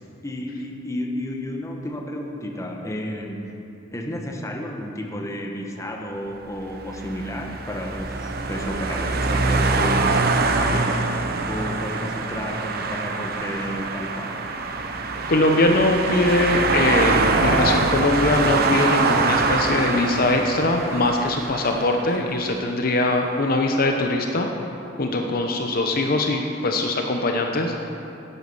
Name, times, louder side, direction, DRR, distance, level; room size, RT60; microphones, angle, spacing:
voice 1, 0.2-3.6 3.9-10.9 11.2-14.4 25.0-25.3, equal, 15° left, 1 dB, 1.2 m, -32 dB
sound 1, 6.7-22.1, right 3 dB, 55° right, 0.8 m, -24 dB
voice 2, 15.3-24.5 25.0-27.9, left 2 dB, 50° left, 3 dB, 0.8 m, -22 dB
11.5 x 10.5 x 5.6 m, 2.8 s
head